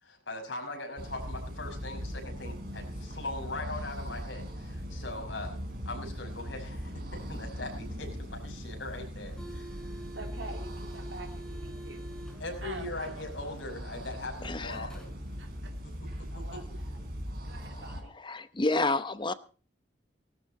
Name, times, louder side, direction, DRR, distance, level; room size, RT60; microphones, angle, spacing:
voice 1, 0.0-5.6 5.8-9.8 12.4-15.1 16.3-16.6, left 2 dB, 85° left, 3 dB, 5.9 m, -40 dB
sound 1, 1.0-18.0, equal, 55° right, 3.7 m, -40 dB
sound 2, 9.1-15.6, right 1 dB, 5° left, 4.0 m, -48 dB
voice 2, 10.1-12.0 12.6-13.2 14.9-15.0 15.4-17.0 17.4-18.2, right 2 dB, 75° right, 3 dB, 2.7 m, -46 dB
voice 3, 14.4-14.9 18.2-19.3, left 2 dB, 25° left, 13 dB, 0.8 m, -29 dB
19.0 x 12.5 x 4.2 m, 0.37 s
head